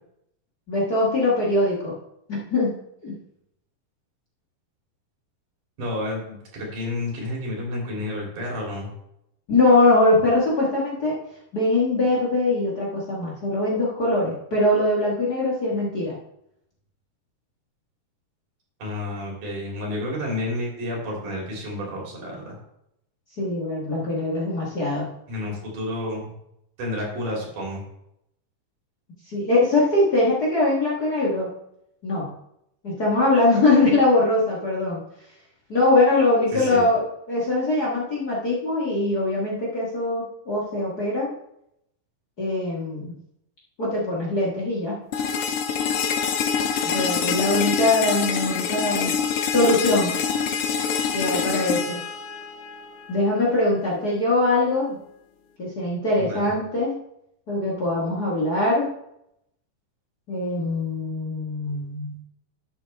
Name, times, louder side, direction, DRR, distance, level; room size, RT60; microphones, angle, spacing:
voice 1, 0.7-2.0 2.3-2.7 3.0-3.1 9.5-11.2 11.5-16.2 23.4-25.1 29.3-31.5 32.0-32.3 32.8-35.0 35.7-37.0 37.3-41.3 42.4-43.1 43.8-45.0 46.9-49.1 49.5-50.1 51.1-52.0 53.1-55.0 55.6-57.0 57.5-58.9 60.3-62.2, left 2 dB, 35° left, -5 dB, 1.8 m, -22 dB
voice 2, 5.8-8.9 18.8-22.6 25.3-26.3 26.8-27.8 36.5-36.9 56.2-56.5, left 1 dB, 75° right, -3 dB, 4.6 m, -30 dB
sound 1, 45.1-53.1, left 7 dB, 85° left, 1.2 m, -25 dB
12.0 x 7.1 x 3.5 m, 0.79 s
omnidirectional pair, 3.6 m